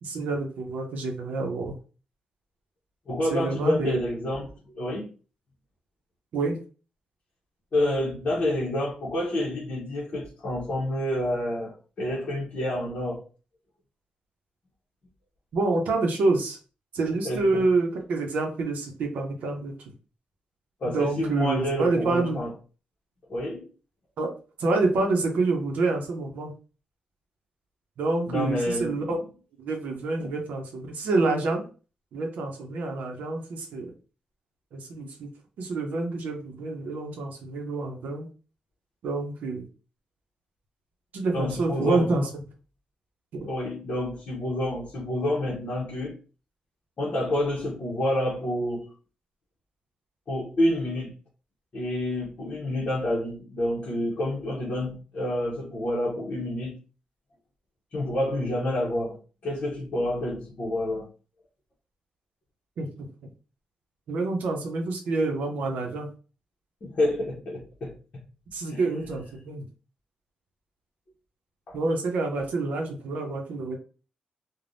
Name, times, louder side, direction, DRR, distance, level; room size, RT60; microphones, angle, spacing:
voice 1, 0.0-1.8 3.3-4.0 6.3-6.6 15.5-16.6 16.9-19.9 20.8-22.4 24.2-24.3 24.6-26.5 28.0-29.2 29.6-31.6 32.1-33.9 34.7-35.3 35.6-38.3 39.0-39.6 41.1-42.3 43.4-43.5 62.8-63.1 64.1-66.1 68.5-69.6 71.7-73.8, right 3 dB, 75° right, 0.6 m, -27 dB
voice 2, 3.1-5.1 7.7-13.2 17.2-17.6 20.8-22.5 23.3-23.7 28.3-29.1 30.2-30.3 41.3-42.1 43.5-46.2 47.0-48.9 50.3-51.1 51.7-56.8 57.9-61.1 66.8-68.2 68.7-68.9 71.7-71.8 72.4-72.5, left 1 dB, 40° left, 0.7 m, -28 dB
3.3 x 2.1 x 2.5 m
wide cardioid pair, 175°, 3 cm